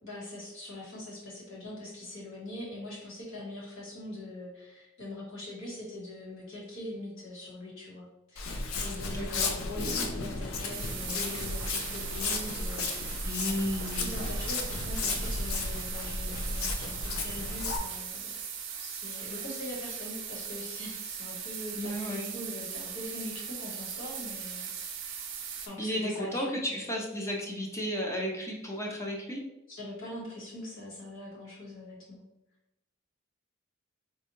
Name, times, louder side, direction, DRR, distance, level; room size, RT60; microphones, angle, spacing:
voice 1, 0.0-13.3 14.0-18.4 18.8-24.7 25.7-26.9 29.7-32.2, left 1 dB, 65° left, -4 dB, 1.3 m, -42 dB
Walk footsteps, 8.4-17.8, left 3 dB, 85° left, 0.5 m, -34 dB
voice 2, 9.0-9.6 13.2-14.1 21.8-22.3 25.8-29.4, equal, 15° left, -1 dB, 0.5 m, -33 dB
sound 1, 9.8-16.3, left 1 dB, 45° left, 0.9 m, -46 dB
sound 2, 10.7-25.7, right 7 dB, 60° right, 0.5 m, -39 dB
4.1 x 2.3 x 3.0 m, 0.91 s
head